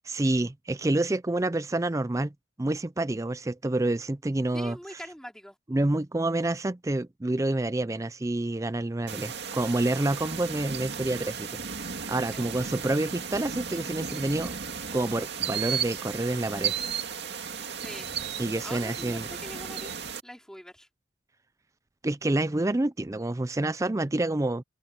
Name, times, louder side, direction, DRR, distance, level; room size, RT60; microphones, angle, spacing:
voice 1, 0.0-2.3 2.6-5.0 5.7-11.6 12.1-14.5 14.9-16.8 18.4-19.3 22.0-24.6, right 2 dB, 15° right, 0.4 m, -28 dB
voice 2, 4.5-5.6 12.3-12.4 17.8-18.1 18.6-20.9, equal, 5° left, 4.4 m, -43 dB
sound 1, 9.1-20.2, right 7 dB, 55° right, 2.5 m, -35 dB
head